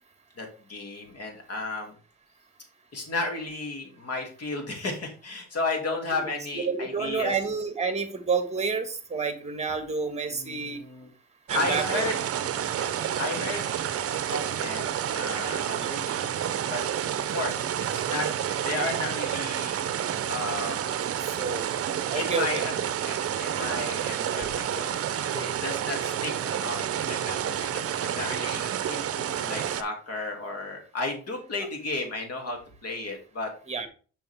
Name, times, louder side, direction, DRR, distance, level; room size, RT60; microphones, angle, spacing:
voice 1, 0.4-2.0 2.9-7.4 10.3-11.1 11.5-12.1 12.8-12.9 13.2-13.8 14.3-16.8 17.3-17.6 17.9-18.3 18.6-19.8 20.3-20.8 22.1-22.8 23.1-24.9 25.3-33.5, left 2 dB, 55° left, 3 dB, 2.5 m, -33 dB
voice 2, 6.6-10.8 11.5-12.1 15.8-15.9 20.7-20.8 21.4-21.7 22.1-22.6 24.3-24.5 33.7-33.9, right 5 dB, 20° right, 8 dB, 1.5 m, -29 dB
sound 1, 11.5-29.8, right 10 dB, 50° right, 0.7 m, -29 dB
6.8 x 5.7 x 3.4 m, 0.38 s
cardioid pair, 90°, 30 cm